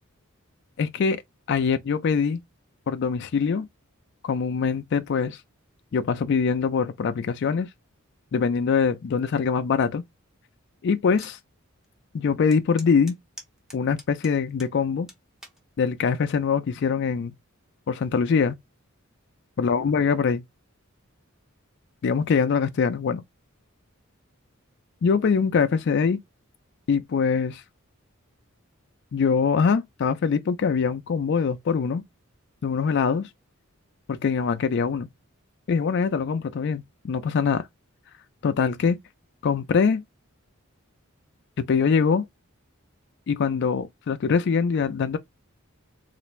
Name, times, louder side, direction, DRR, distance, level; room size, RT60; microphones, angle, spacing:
voice 1, 0.8-1.2 1.5-2.4 2.9-3.7 4.2-5.4 5.9-7.7 8.3-10.0 10.8-11.4 12.1-13.2 13.7-15.1 15.8-17.3 17.9-18.6 19.6-20.4 22.0-23.2 25.0-26.2 26.9-27.6 29.1-32.0 32.6-33.3 34.2-35.1 35.7-37.7 38.4-39.0 39.4-40.0 41.6-42.3 43.3-45.2, left 5 dB, 55° left, 0.4 m, -23 dB
sound 1, 11.2-11.4 11.8-11.9 12.5-14.7 15.1-15.6 16.3-16.6, equal, 5° right, 0.7 m, -45 dB
3.2 x 2.5 x 3.0 m
head